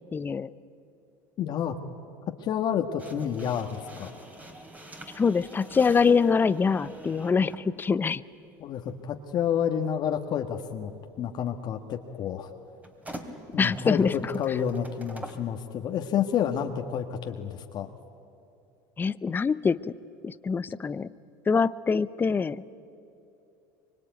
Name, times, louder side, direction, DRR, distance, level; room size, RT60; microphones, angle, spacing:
voice 1, 0.1-0.5 5.2-8.2 13.6-14.1 19.0-19.9 20.2-21.1 21.5-22.6, left 5 dB, 20° left, 16 dB, 0.7 m, -24 dB
voice 2, 1.4-1.8 2.4-4.1 8.6-10.9 11.2-12.5 13.5-17.9, left 8 dB, 45° left, 4 dB, 1.6 m, -29 dB
sound 1, 3.0-7.7 8.8-9.0 12.8-15.5, right 1 dB, 15° right, 3.2 m, -45 dB
24.5 x 24.5 x 9.3 m, 2.8 s
supercardioid pair, 100°, 10 cm